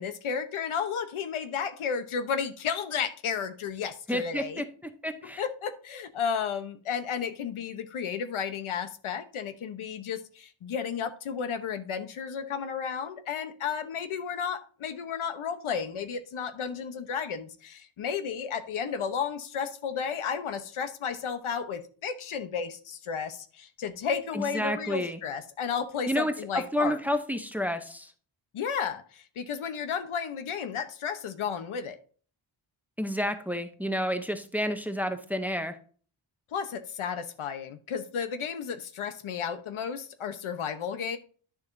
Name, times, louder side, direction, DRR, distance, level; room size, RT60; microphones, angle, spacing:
voice 1, 0.0-4.6 5.4-27.0 28.5-32.0 36.5-41.2, left 7 dB, 90° left, 10 dB, 1.0 m, -33 dB
voice 2, 4.1-4.6 5.0-5.4 24.3-25.2 26.1-26.3 26.7-28.1 33.0-35.8, equal, 5° right, 8 dB, 0.7 m, -30 dB
10.5 x 6.9 x 2.7 m, 0.42 s
wide cardioid pair, 165°, 48 cm